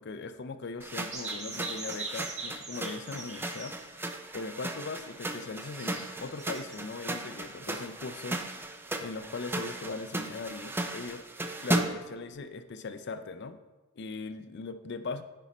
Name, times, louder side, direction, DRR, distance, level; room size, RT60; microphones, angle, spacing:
voice 1, 0.0-3.8 4.3-8.4 9.0-11.2 11.6-13.6 14.0-15.2, left 4 dB, 55° left, 10 dB, 0.5 m, -39 dB
sound 1, 0.8-12.1, right 1 dB, 10° right, 0.4 m, -36 dB
sound 2, 1.1-3.7 5.5-6.8, right 3 dB, 35° right, 1.5 m, -40 dB
9.1 x 5.5 x 4.2 m, 1.1 s
head